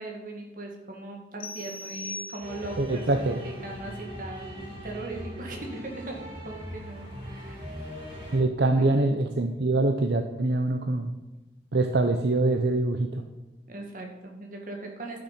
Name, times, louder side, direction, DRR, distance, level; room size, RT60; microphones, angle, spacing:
voice 1, 0.0-7.7 8.6-8.9 13.7-15.2, right 2 dB, 50° right, 1 dB, 2.0 m, -39 dB
sound 1, 1.4-2.9, left 2 dB, 55° left, 0.9 m, -39 dB
sound 2, 2.4-8.4, equal, 30° right, 3.5 m, -40 dB
voice 2, 2.8-3.4 8.3-11.1 11.7-13.2, right 2 dB, 70° right, 6 dB, 0.7 m, -24 dB
11.5 x 6.9 x 5.8 m, 1.0 s
head